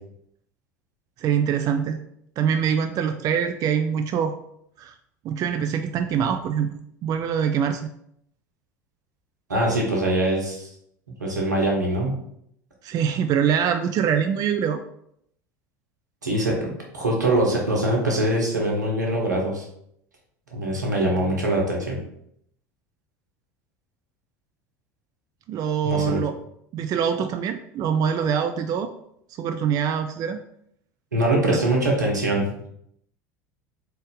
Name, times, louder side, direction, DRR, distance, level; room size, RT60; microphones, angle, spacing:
voice 1, 1.2-2.0 2.4-4.4 4.8-4.9 5.2-7.9 12.8-14.8 25.5-26.3 26.7-28.9 29.4-30.4, right 8 dB, 40° right, 8 dB, 0.4 m, -24 dB
voice 2, 9.5-10.7 11.2-12.2 16.2-19.6 20.5-22.0 25.8-26.2 31.1-32.4, right 1 dB, 90° right, -2 dB, 1.2 m, -23 dB
4.0 x 3.4 x 3.8 m, 0.73 s
hypercardioid pair, 75°, 9 cm